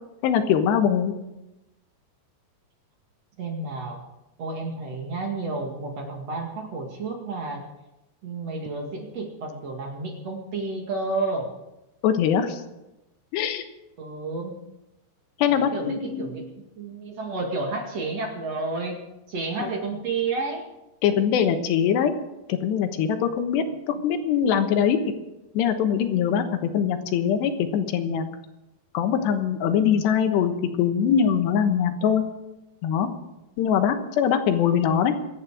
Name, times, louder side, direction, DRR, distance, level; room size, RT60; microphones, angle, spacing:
voice 1, 0.2-1.1 12.0-12.6 13.3-13.6 15.4-16.4 19.6-19.7 21.0-22.1 22.5-25.0 25.6-28.3 29.0-30.5 30.8-32.3 32.8-33.1 33.6-35.1, left 8 dB, 80° left, 7 dB, 3.3 m, -22 dB
voice 2, 3.4-4.0 4.4-7.6 8.2-11.5 14.0-14.5 15.5-20.6 23.9-24.0 29.7-29.9, right 3 dB, 45° right, 1 dB, 2.7 m, -31 dB
26.0 x 9.6 x 4.9 m, 0.96 s
omnidirectional pair, 4.9 m